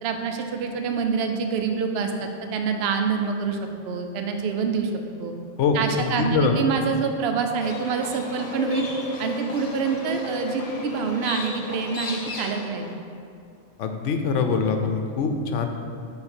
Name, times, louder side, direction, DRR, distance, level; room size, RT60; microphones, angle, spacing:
voice 1, 0.0-3.6 3.8-4.9 5.2-5.3 5.7-8.9 9.2-12.9, right 5 dB, 60° right, 5 dB, 0.8 m, -26 dB
voice 2, 5.6-6.6 13.8-15.7, left 4 dB, 70° left, 5 dB, 0.9 m, -23 dB
Livestock farm animals working animals, 7.6-13.0, left 3 dB, 40° left, 0.5 m, -34 dB
8.4 x 3.9 x 4.4 m, 2.3 s
omnidirectional pair, 1.3 m